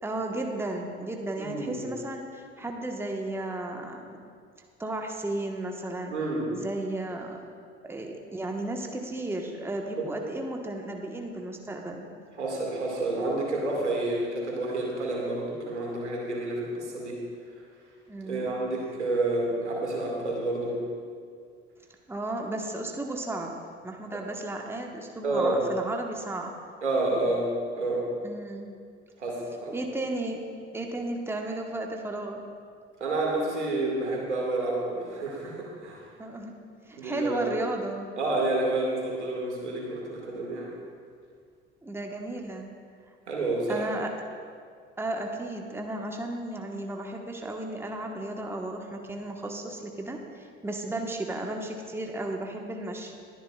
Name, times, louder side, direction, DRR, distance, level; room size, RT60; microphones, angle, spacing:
voice 1, 0.0-4.2 4.8-6.1 6.5-7.5 7.8-12.1 18.1-18.5 22.1-23.5 23.8-26.5 28.2-28.7 29.7-30.5 30.7-32.4 36.2-36.5 36.9-38.1 41.8-42.7 43.7-44.3 45.0-53.1, right 2 dB, 5° right, 2 dB, 1.3 m, -34 dB
voice 2, 1.4-1.9 6.1-6.5 10.0-10.1 12.4-17.2 18.2-20.8 24.1-24.2 25.2-25.6 26.8-27.5 27.8-28.0 29.2-29.7 33.0-36.0 36.9-37.4 38.2-40.7 43.3-43.9, right 2 dB, 80° right, -1 dB, 2.1 m, -29 dB
21.0 x 10.0 x 2.4 m, 2.1 s
figure-of-eight pair, 60°, 34 cm